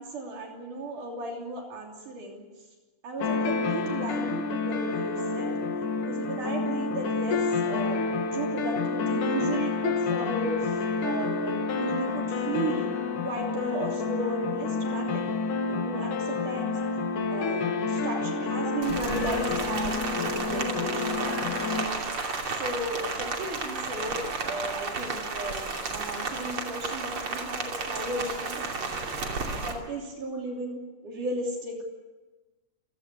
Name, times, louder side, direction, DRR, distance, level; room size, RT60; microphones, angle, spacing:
voice 1, 0.0-2.5 3.0-5.6 6.0-8.0 8.3-12.9 13.2-15.3 15.7-16.8 17.3-22.1 22.5-28.9 29.6-31.9, right 2 dB, 70° right, 1 dB, 4.6 m, -35 dB
sound 1, 3.2-21.9, left 4 dB, 70° left, 3.4 m, -29 dB
sound 2, 18.6-19.7 21.1-22.1 24.9-25.6, left 7 dB, 55° left, 2.5 m, -46 dB
Rain, 18.8-29.7, right 4 dB, 40° right, 3.4 m, -32 dB
28.0 x 17.0 x 8.5 m, 1.2 s
omnidirectional pair, 3.8 m